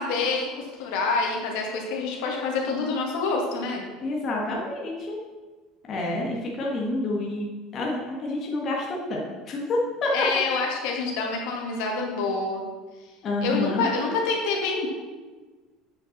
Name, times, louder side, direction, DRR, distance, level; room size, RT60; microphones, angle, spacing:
voice 1, 0.0-3.8 10.1-12.6 13.4-14.9, left 4 dB, 70° left, 0 dB, 2.1 m, -27 dB
voice 2, 4.0-5.2 5.9-10.1 13.2-13.9, left 2 dB, 30° left, -2 dB, 1.6 m, -28 dB
8.7 x 5.9 x 5.9 m, 1.3 s
cardioid pair, 160°, 0 cm